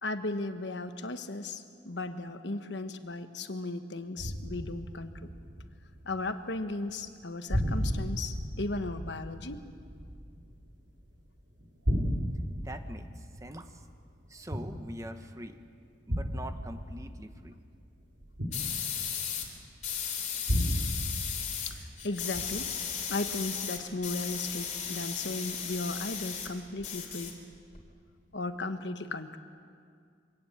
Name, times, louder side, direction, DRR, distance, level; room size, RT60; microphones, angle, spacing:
voice 1, 0.0-5.1 6.1-9.6 21.7-22.7 23.1-27.4 28.3-29.4, left 2 dB, 75° left, 9 dB, 1.2 m, -36 dB
sound 1, 4.2-6.4 6.7-7.2 7.5-11.2 11.6-15.2 16.1-19.6 20.5-22.0 22.3-22.9, equal, 75° right, 3.1 m, -34 dB
voice 2, 12.6-13.8 14.3-15.6 16.1-17.6, right 1 dB, 20° right, 7 dB, 1.1 m, -44 dB
sound 2, 18.5-19.5 19.8-21.7 22.0-26.5 26.8-27.8, left 7 dB, 40° left, 3.0 m, -35 dB
24.5 x 17.5 x 8.7 m, 2.2 s
head